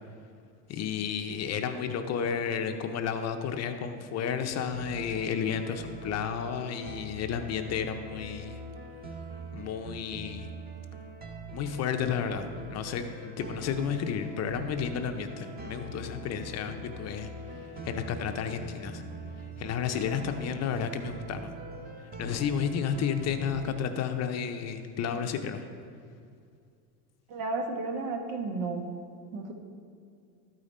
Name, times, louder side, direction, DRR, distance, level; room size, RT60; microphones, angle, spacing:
voice 1, 0.7-8.6 9.5-10.5 11.5-17.3 17.8-19.0 19.6-21.5 22.2-25.6, left 7 dB, 35° left, 6 dB, 0.5 m, -32 dB
sound 1, 4.7-23.8, right 2 dB, 20° right, 0.9 m, -43 dB
voice 2, 27.3-28.8 29.3-29.5, right 3 dB, 85° right, 3 dB, 1.3 m, -32 dB
12.5 x 5.1 x 4.2 m, 2.3 s
supercardioid pair, 130°, 45 cm